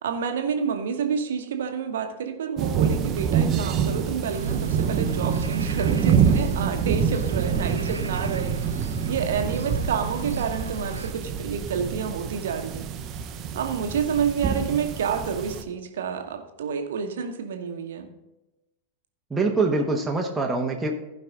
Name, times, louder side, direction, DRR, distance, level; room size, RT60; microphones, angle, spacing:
voice 1, 0.0-12.9 13.5-18.1, right 6 dB, 60° right, 5 dB, 1.1 m, -29 dB
sound 1, 2.6-15.6, right 7 dB, 35° right, 0.8 m, -26 dB
sound 2, 4.3-11.1, right 4 dB, 75° right, 0.6 m, -35 dB
voice 2, 19.3-20.9, right 3 dB, 10° right, 0 dB, 1.2 m, -24 dB
15.5 x 5.4 x 3.8 m, 1.0 s
figure-of-eight pair, 90°, 0 cm